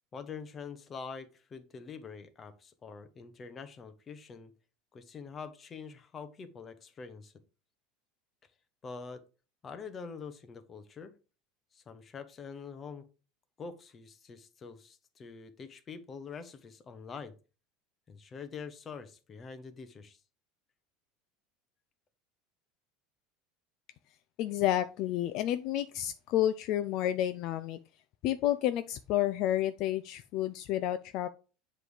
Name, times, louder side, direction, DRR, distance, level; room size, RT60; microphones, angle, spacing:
voice 1, 0.1-4.5 4.9-7.3 8.8-9.2 9.6-11.1 11.7-13.1 13.6-17.3 18.1-20.2, left 5 dB, 25° left, 10 dB, 0.8 m, -45 dB
voice 2, 24.4-27.8 28.2-31.3, left 12 dB, 50° left, 11 dB, 0.4 m, -30 dB
7.5 x 3.3 x 5.0 m, 0.34 s
supercardioid pair, 145°, 0 cm